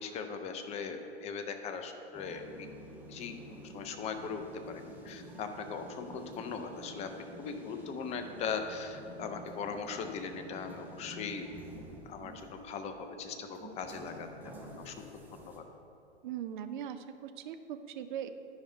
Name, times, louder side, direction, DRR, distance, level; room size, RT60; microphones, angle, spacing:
voice 1, 0.0-2.4 3.1-3.3 3.6-4.4 4.7-7.1 7.4-11.4 12.1-14.3 14.8-14.9 15.5-15.6, left 5 dB, 20° left, 6 dB, 0.5 m, -39 dB
sound 1, 2.1-15.6, right 1 dB, 5° right, 0.8 m, -49 dB
voice 2, 16.2-18.3, right 9 dB, 45° right, 10 dB, 0.6 m, -40 dB
10.5 x 5.1 x 4.3 m, 2.6 s
figure-of-eight pair, 100°, 34 cm